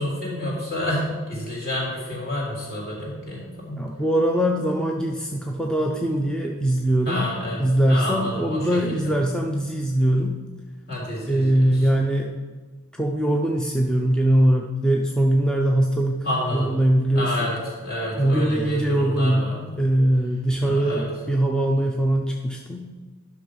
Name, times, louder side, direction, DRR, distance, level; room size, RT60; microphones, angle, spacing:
voice 1, 0.0-3.8 7.1-7.6 7.9-9.1 10.9-11.5 16.2-16.7 17.1-17.6 17.8-19.6 20.6-21.1, left 1 dB, 45° left, -5 dB, 3.6 m, -29 dB
voice 2, 3.8-7.2 7.6-10.4 11.3-12.3 13.0-16.3 16.5-17.5 18.2-19.5 19.8-22.8, right 1 dB, 5° left, 1 dB, 0.5 m, -21 dB
11.0 x 6.2 x 5.3 m, 1.4 s
head